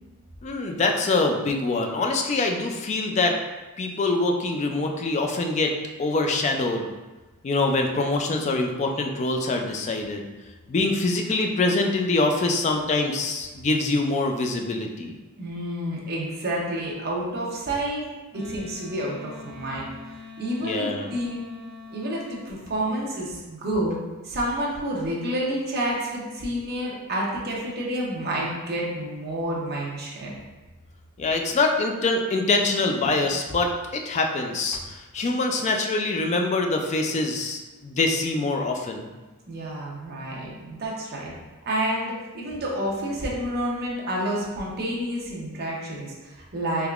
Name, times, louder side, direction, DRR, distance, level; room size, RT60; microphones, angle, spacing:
voice 1, 0.4-3.4 3.8-5.7 6.0-6.9 7.4-10.3 10.7-15.1 20.6-21.1 31.2-39.1, left 2 dB, 30° left, 3 dB, 0.3 m, -24 dB
voice 2, 15.4-18.0 18.3-21.4 21.9-24.0 24.2-30.3 39.5-41.3 41.7-46.9, right 1 dB, 45° right, -4 dB, 0.7 m, -29 dB
Wind instrument woodwind instrument, 18.3-22.5, left 4 dB, 15° left, 0.9 m, -43 dB
3.4 x 3.3 x 2.4 m, 1.2 s
head